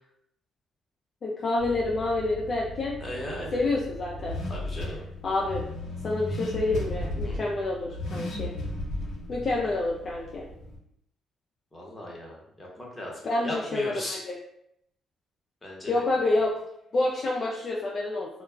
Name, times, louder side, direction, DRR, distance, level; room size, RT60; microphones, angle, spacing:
voice 1, 1.2-3.0 3.5-4.4 5.2-5.6 6.0-8.5 9.3-10.5 13.2-14.3 15.9-16.5 16.9-18.3, left 2 dB, 45° left, -2 dB, 0.4 m, -28 dB
Car / Accelerating revving vroom, 1.6-10.8, left 1 dB, 65° left, 0.8 m, -36 dB
voice 2, 3.0-3.7 4.5-5.0 7.2-7.4 11.7-14.2 15.6-16.0, left 1 dB, 20° left, -3 dB, 0.9 m, -37 dB
2.2 x 2.2 x 3.3 m, 0.74 s
cardioid pair, 90°, 0 cm